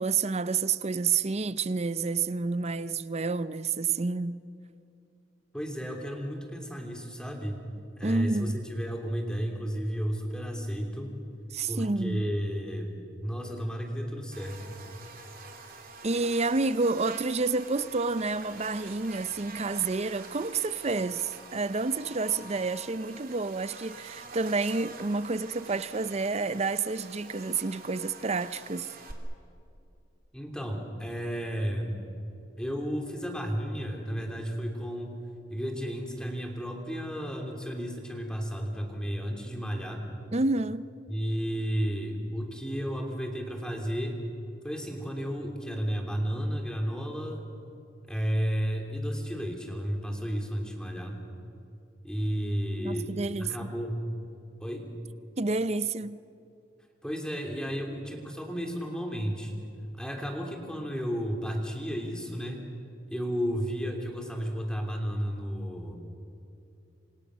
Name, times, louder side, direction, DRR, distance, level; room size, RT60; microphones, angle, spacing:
voice 1, 0.0-4.4 8.0-8.6 11.5-12.3 16.0-28.9 40.3-40.9 52.8-53.7 55.4-56.2, right 4 dB, 35° right, 0.6 m, -29 dB
voice 2, 5.5-7.6 8.0-11.1 11.7-14.8 30.3-32.0 32.6-40.1 41.1-44.2 44.6-47.4 48.1-51.2 52.0-53.1 53.4-54.0 54.6-54.9 57.0-59.5 59.9-62.6 63.1-66.0, equal, 5° left, 3.1 m, -33 dB
Buzz, 14.3-29.1, right 3 dB, 50° right, 2.9 m, -46 dB
27.5 x 27.0 x 6.3 m
head